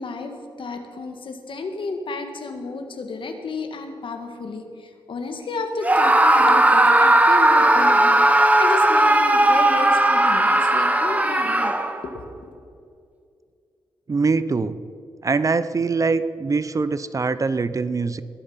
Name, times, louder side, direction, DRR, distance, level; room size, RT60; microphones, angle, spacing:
voice 1, 0.0-11.7 12.0-12.5, left 3 dB, 70° left, 5 dB, 1.7 m, -32 dB
Screaming, 5.8-12.1, right 1 dB, 15° right, 1.0 m, -17 dB
voice 2, 14.1-14.8 15.2-18.2, right 4 dB, 40° right, 14 dB, 0.6 m, -23 dB
21.0 x 7.9 x 5.6 m, 2.4 s
cardioid pair, 80°, 9 cm